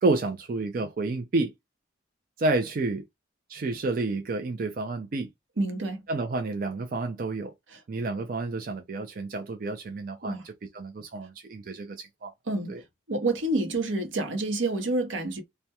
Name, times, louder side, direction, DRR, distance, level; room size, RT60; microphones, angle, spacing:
voice 1, 0.0-1.5 2.4-3.0 3.5-5.3 6.1-7.5 7.9-12.3 12.7-12.8, right 3 dB, 45° right, 0.3 m, -30 dB
voice 2, 5.6-6.0 7.7-7.8 10.2-10.4 12.5-12.8 13.1-15.4, right 2 dB, 80° right, 0.8 m, -28 dB
2.2 x 2.1 x 2.7 m
head